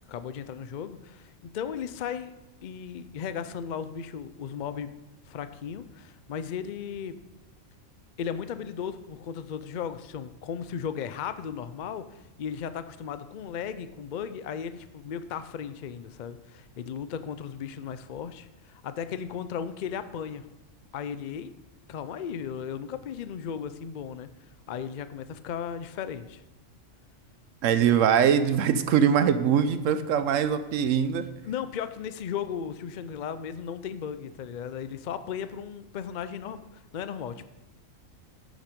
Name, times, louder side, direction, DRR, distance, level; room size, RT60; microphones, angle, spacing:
voice 1, 0.1-2.3 2.6-4.9 5.3-7.2 8.2-20.5 20.9-21.5 21.9-24.3 24.7-26.4 31.4-37.4, left 7 dB, 60° left, 12 dB, 0.5 m, -36 dB
voice 2, 27.6-31.3, right 8 dB, 80° right, 11 dB, 1.0 m, -22 dB
9.0 x 7.3 x 5.2 m, 1.0 s
omnidirectional pair, 1.4 m